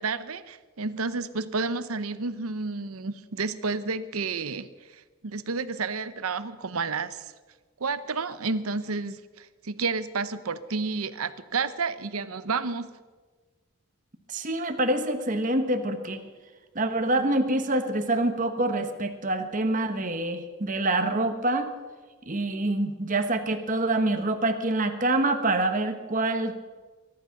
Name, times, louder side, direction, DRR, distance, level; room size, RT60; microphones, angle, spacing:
voice 1, 0.0-7.3 7.8-12.9, right 4 dB, 80° right, 14 dB, 0.8 m, -31 dB
voice 2, 14.3-16.2 16.7-21.7 22.3-26.6, right 2 dB, 35° right, 7 dB, 1.2 m, -26 dB
22.0 x 11.0 x 5.9 m, 1.4 s
head